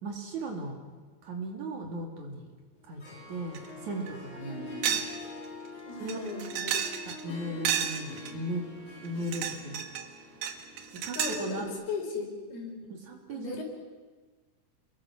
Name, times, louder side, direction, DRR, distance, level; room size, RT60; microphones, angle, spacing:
voice 1, 0.0-0.8 1.2-2.5 2.8-5.0 6.0-6.2 7.1-8.6 9.0-9.8 11.0-11.7 12.9-13.6, right 1 dB, 50° right, 2 dB, 3.8 m, -37 dB
Harp, 2.8-11.7, left 3 dB, 40° left, 6.2 m, -45 dB
sound 1, 3.5-3.7 4.1-4.2 4.8-5.2 5.4-5.5 6.1-7.2 7.6-8.3 9.1-10.1 10.4-11.5, right 9 dB, 75° right, 3.1 m, -31 dB
voice 2, 4.4-5.0 5.9-6.9 11.2-12.8 13.3-13.6, left 4 dB, 85° left, 1 dB, 6.1 m, -37 dB
29.0 x 22.5 x 6.2 m, 1.4 s
omnidirectional pair, 4.4 m